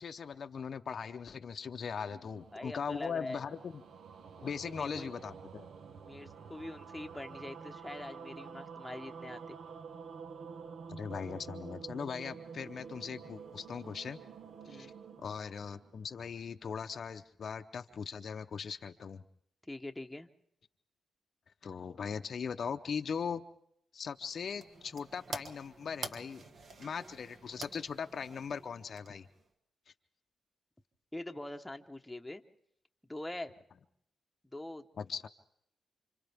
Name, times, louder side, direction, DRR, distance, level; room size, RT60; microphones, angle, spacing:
voice 1, 0.0-3.8 4.4-5.7 10.9-14.2 14.7-14.9 15.2-19.2 21.6-23.4 23.9-26.4 26.8-29.3 35.0-35.3, left 6 dB, 55° left, 7 dB, 0.7 m, -39 dB
sound 1, 2.0-16.4, right 6 dB, 70° right, 1.1 m, -49 dB
voice 2, 2.5-3.4 4.4-5.1 6.0-9.6 14.7-14.9 19.7-20.3 31.1-32.4 33.1-33.5 34.5-34.9, left 1 dB, 5° left, 4 dB, 1.1 m, -44 dB
sound 2, 24.1-29.5, right 3 dB, 55° right, 1.6 m, -48 dB
28.5 x 26.0 x 3.6 m, 0.72 s
cardioid pair, 95°, 0 cm